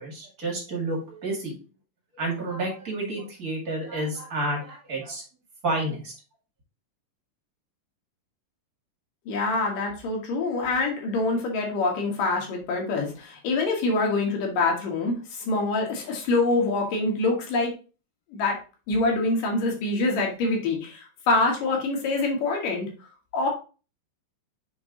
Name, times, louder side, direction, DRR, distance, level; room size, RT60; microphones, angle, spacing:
voice 1, 0.0-1.5 2.1-5.2 5.6-6.1, right 2 dB, 30° right, -1 dB, 2.0 m, -30 dB
voice 2, 9.3-17.7 18.3-18.6 18.9-22.9 23.3-23.5, left 3 dB, 75° left, 0 dB, 3.2 m, -25 dB
7.2 x 3.8 x 3.8 m, 0.34 s
omnidirectional pair, 3.9 m